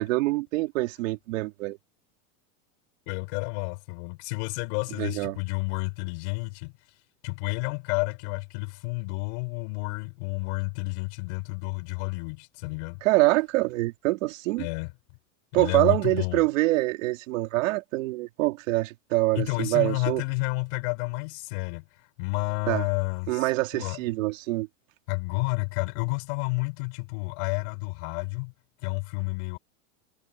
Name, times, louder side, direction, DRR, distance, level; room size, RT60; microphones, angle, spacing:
voice 1, 0.0-1.8 5.0-5.4 13.0-14.7 15.5-20.2 22.7-22.9 23.3-24.7, right 20 dB, 75° right, 3.2 m, -25 dB
voice 2, 3.1-6.7 7.2-13.0 14.6-14.9 15.5-16.4 19.3-21.9 22.2-24.0 25.1-28.5 28.8-29.6, left 31 dB, 55° left, 5.7 m, -30 dB
supercardioid pair, 170°, 39 cm